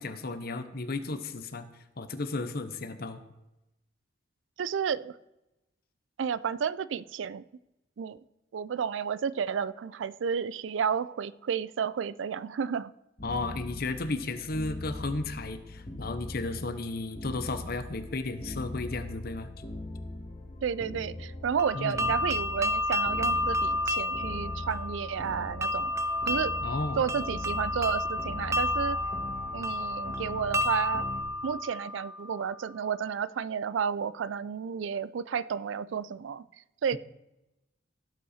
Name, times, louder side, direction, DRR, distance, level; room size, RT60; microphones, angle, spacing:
voice 1, 0.0-1.7 2.0-3.2 13.2-19.5 21.7-22.1 26.6-27.0, left 3 dB, 55° left, 10 dB, 0.8 m, -34 dB
voice 2, 4.6-5.1 6.2-7.4 8.0-8.2 8.5-12.9 20.6-25.9 26.3-26.5 27.0-29.0 29.5-31.1 31.4-36.4 36.8-37.0, right 7 dB, 85° right, 19 dB, 0.4 m, -31 dB
sound 1, 13.2-31.2, left 1 dB, 40° left, 2.1 m, -40 dB
sound 2, 21.6-32.4, left 1 dB, 15° right, 0.4 m, -31 dB
16.0 x 5.6 x 4.2 m, 0.96 s
head